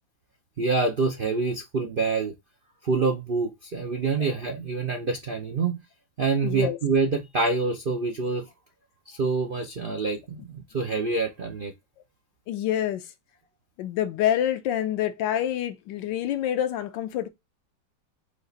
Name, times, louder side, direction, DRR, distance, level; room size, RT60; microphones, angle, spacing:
voice 1, 0.6-2.3 2.8-5.8 6.2-8.4 9.1-11.7, right 4 dB, 75° right, 0.4 m, -26 dB
voice 2, 6.4-6.8 12.5-13.0 13.8-17.3, left 11 dB, 75° left, 1.3 m, -27 dB
5.0 x 2.5 x 3.9 m
omnidirectional pair, 2.1 m